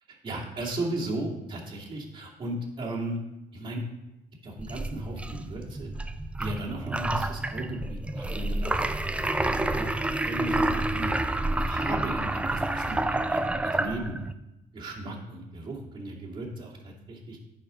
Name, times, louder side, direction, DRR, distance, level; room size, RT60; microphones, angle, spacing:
voice 1, 0.2-3.2 3.5-3.8 4.4-5.9 6.4-8.9 9.1-9.9 10.2-11.1 11.5-14.2 14.7-17.4, right 1 dB, 30° right, -4 dB, 2.5 m, -36 dB
sound 1, 4.6-14.3, right 2 dB, 5° right, 0.4 m, -29 dB
10.5 x 4.5 x 5.1 m, 0.93 s
cardioid pair, 110°, 17 cm